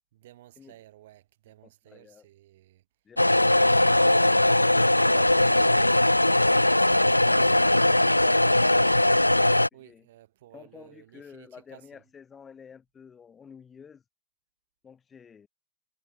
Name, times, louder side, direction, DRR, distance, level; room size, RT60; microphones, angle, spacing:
voice 1, 0.1-2.8 7.3-7.6 9.7-12.0, right 14 dB, 60° right, 4.7 m, -53 dB
voice 2, 1.9-2.3 9.7-10.0 10.5-14.0 14.8-15.5, left 6 dB, 20° left, 6.6 m, -49 dB
sound 1, 3.2-9.7, left 1 dB, 90° left, 0.4 m, -20 dB
figure-of-eight pair, 85°, 0 cm